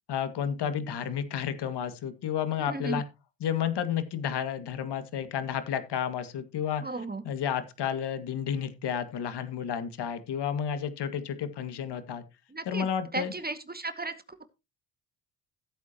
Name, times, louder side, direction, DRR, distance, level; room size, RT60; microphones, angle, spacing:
voice 1, 0.1-3.0 3.4-12.2 12.7-13.3, left 8 dB, 60° left, 10 dB, 2.2 m, -31 dB
voice 2, 2.6-3.0 6.8-7.2 12.5-12.9 13.1-14.1, right 3 dB, 20° right, 10 dB, 2.0 m, -34 dB
16.0 x 8.3 x 2.9 m, 0.26 s
hypercardioid pair, 55°, 45 cm